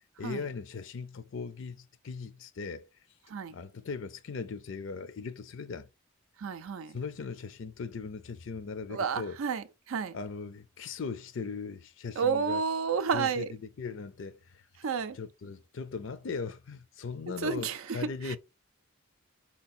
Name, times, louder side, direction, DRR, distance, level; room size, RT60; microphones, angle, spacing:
voice 1, 0.2-2.9 3.5-5.9 6.9-9.4 10.1-12.6 13.1-14.7 15.1-18.4, left 4 dB, 60° left, 0.4 m, -39 dB
voice 2, 6.4-7.0 8.9-10.2 12.2-13.5 14.8-15.2 17.4-18.4, right 5 dB, 80° right, 0.5 m, -31 dB
4.2 x 2.9 x 4.2 m
head